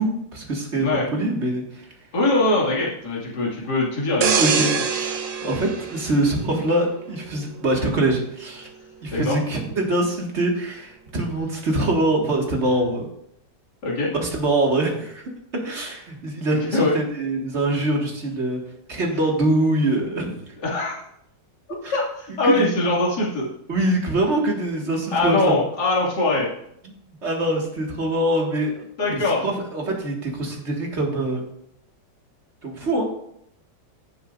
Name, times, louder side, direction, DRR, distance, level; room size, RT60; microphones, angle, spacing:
voice 1, 0.0-1.8 4.4-8.7 9.0-13.1 14.1-15.2 15.5-18.6 18.9-20.4 21.7-21.9 22.4-22.7 23.7-25.6 27.2-31.5 32.6-33.1, right 1 dB, 40° right, 0 dB, 2.1 m, -24 dB
voice 2, 2.1-4.4 9.1-9.4 13.8-14.1 16.7-17.0 20.6-21.0 21.9-23.5 25.1-26.5 29.0-29.5, left 2 dB, 65° left, -5 dB, 2.9 m, -22 dB
sound 1, 4.2-6.9 7.3-7.6, right 6 dB, 80° right, 1.6 m, -24 dB
16.0 x 7.1 x 2.6 m, 0.73 s
omnidirectional pair, 1.9 m